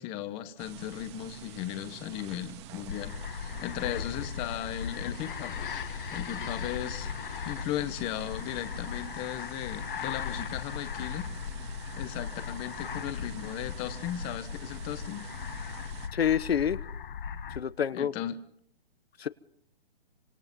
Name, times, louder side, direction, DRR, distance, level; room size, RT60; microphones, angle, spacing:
voice 1, 0.0-5.6 6.1-7.1 7.4-11.3 11.9-15.3 17.9-18.4, left 12 dB, 15° left, 10 dB, 1.2 m, -36 dB
sound 1, 0.6-16.1, right 6 dB, 30° right, 1.8 m, -47 dB
sound 2, 2.9-17.6, left 7 dB, 60° left, 1.4 m, -38 dB
voice 2, 16.1-16.8 17.5-18.1 19.2-19.3, left 8 dB, 80° left, 15 dB, 1.2 m, -27 dB
26.5 x 26.0 x 5.5 m, 0.71 s
hypercardioid pair, 160°, 30 cm